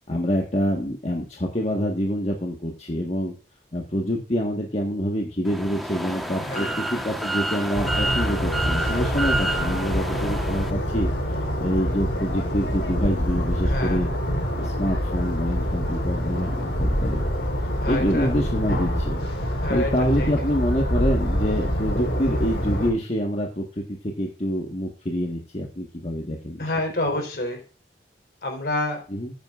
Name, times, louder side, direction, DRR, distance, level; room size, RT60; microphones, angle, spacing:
voice 1, 0.1-3.3 3.7-14.1 14.6-17.2 17.9-19.2 19.7-26.7 29.1-29.3, equal, 40° left, 0 dB, 1.6 m, -26 dB
sound 1, 5.5-10.7, right 1 dB, ahead, 1.3 m, -29 dB
voice 2, 6.4-6.8 13.6-14.0 17.8-18.3 19.6-19.9 20.2-20.3 26.6-27.6 28.4-29.0, left 2 dB, 60° left, 3 dB, 4.3 m, -28 dB
sound 2, 7.7-22.9, equal, 85° left, 4.0 m, -26 dB
14.5 x 9.2 x 2.5 m, 0.36 s
head